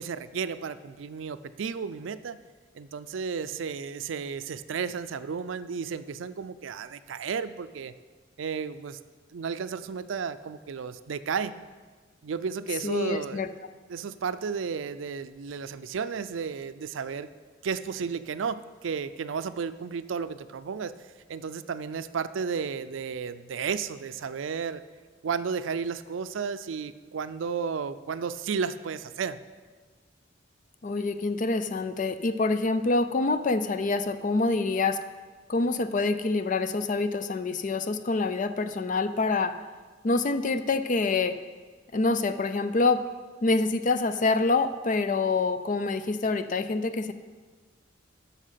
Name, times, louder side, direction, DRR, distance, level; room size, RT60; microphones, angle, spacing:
voice 1, 0.0-2.4 2.7-7.9 8.4-9.0 9.3-11.5 12.2-13.5 13.9-17.3 17.6-21.0 21.3-24.8 25.2-29.4, right 6 dB, 85° right, 13 dB, 0.4 m, -33 dB
voice 2, 12.8-13.5 30.8-35.0 35.5-39.6 40.0-41.4 41.9-43.1 43.4-47.1, left 3 dB, 40° left, 11 dB, 0.5 m, -26 dB
10.0 x 6.4 x 5.7 m, 1.4 s
head